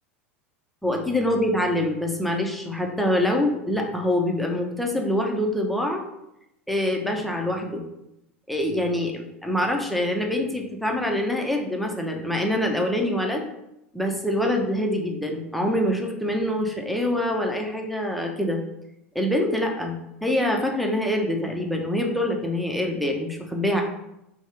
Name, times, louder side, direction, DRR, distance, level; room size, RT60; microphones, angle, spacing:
voice 1, 0.8-6.0 6.7-7.8 8.5-13.4 13.9-18.6 19.1-23.8, left 1 dB, ahead, 1 dB, 0.7 m, -25 dB
3.5 x 2.3 x 4.4 m, 0.85 s
hypercardioid pair, 85°, 7 cm